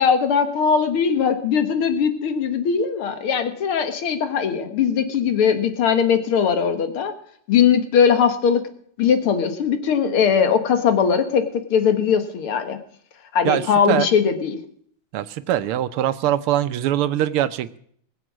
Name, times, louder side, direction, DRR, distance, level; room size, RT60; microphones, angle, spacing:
voice 1, 0.0-7.1 7.5-8.7 9.0-12.8 13.3-14.6, left 7 dB, 75° left, 8 dB, 2.3 m, -20 dB
voice 2, 13.4-14.1 15.1-17.8, right 12 dB, 85° right, 13 dB, 1.7 m, -22 dB
20.5 x 7.7 x 6.2 m, 0.62 s
omnidirectional pair, 2.4 m